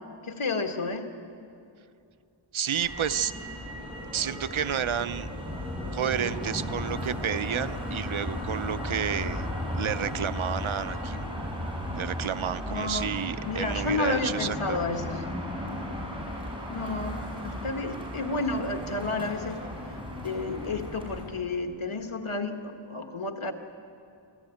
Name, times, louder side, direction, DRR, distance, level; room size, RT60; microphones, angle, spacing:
voice 1, 0.3-1.1 12.7-13.1 13.5-15.2 16.7-19.6 20.2-23.5, left 3 dB, 80° left, 5 dB, 1.7 m, -31 dB
voice 2, 2.5-3.3 4.1-5.3 5.9-9.5 9.7-11.2 11.9-14.8, right 8 dB, 75° right, 14 dB, 0.7 m, -30 dB
Motor vehicle (road), 2.7-21.2, left 1 dB, 10° right, 6.2 m, -35 dB
26.5 x 14.5 x 9.2 m, 2.5 s
wide cardioid pair, 55°, 49 cm